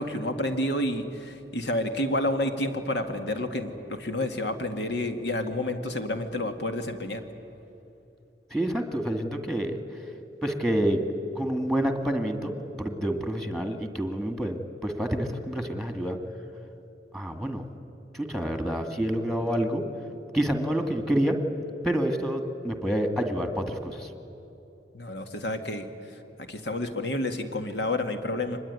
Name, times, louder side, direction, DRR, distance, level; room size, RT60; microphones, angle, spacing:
voice 1, 0.0-7.2 24.9-25.9 26.5-28.6, left 1 dB, 75° left, 7 dB, 2.1 m, -29 dB
voice 2, 8.5-9.8 10.4-11.0 11.3-12.5 12.8-16.2 17.1-17.6 18.1-19.8 20.3-21.3 21.8-24.1, right 1 dB, ahead, 6 dB, 1.9 m, -28 dB
24.5 x 20.5 x 9.6 m, 2.9 s
head